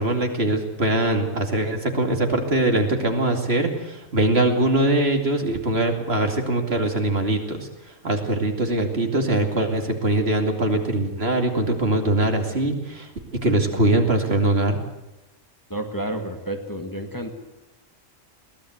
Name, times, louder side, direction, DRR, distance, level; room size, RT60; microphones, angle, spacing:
voice 1, 0.0-7.7 8.0-13.1 13.4-14.8, right 2 dB, 50° right, 4 dB, 2.8 m, -22 dB
voice 2, 15.7-17.3, right 1 dB, 15° left, 4 dB, 1.9 m, -30 dB
22.5 x 17.5 x 7.9 m, 0.97 s
omnidirectional pair, 1.3 m